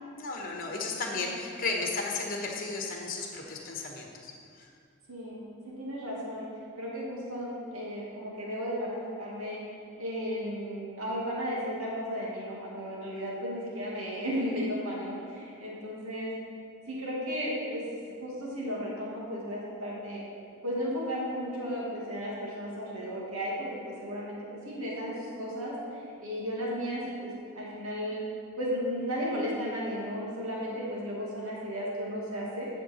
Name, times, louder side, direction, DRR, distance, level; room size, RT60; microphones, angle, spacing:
voice 1, 0.2-4.7, left 3 dB, 40° left, 0 dB, 1.2 m, -34 dB
voice 2, 5.1-6.5 6.8-9.6 10.0-16.3 16.9-17.8 18.2-20.2 20.6-24.4 24.6-25.7 26.2-28.2 28.6-32.7, equal, 80° right, -5 dB, 2.1 m, -34 dB
10.5 x 6.8 x 4.3 m, 2.3 s
head